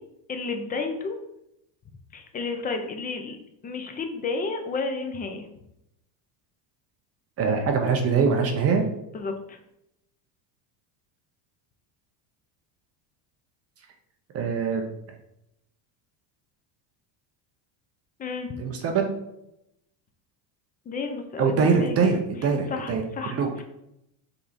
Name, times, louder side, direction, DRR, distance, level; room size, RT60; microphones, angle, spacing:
voice 1, 0.3-1.2 2.1-3.4 3.6-5.5 9.1-9.6 18.2-18.5 20.9-22.0 22.7-23.3 23.6-23.7, left 4 dB, 20° left, 5 dB, 0.5 m, -31 dB
voice 2, 7.4-8.9 14.3-14.8 18.6-19.1 21.4-23.0 23.3-23.5, right 5 dB, 30° right, 4 dB, 0.7 m, -23 dB
5.5 x 4.1 x 4.1 m, 0.81 s
cardioid pair, 160°, 48 cm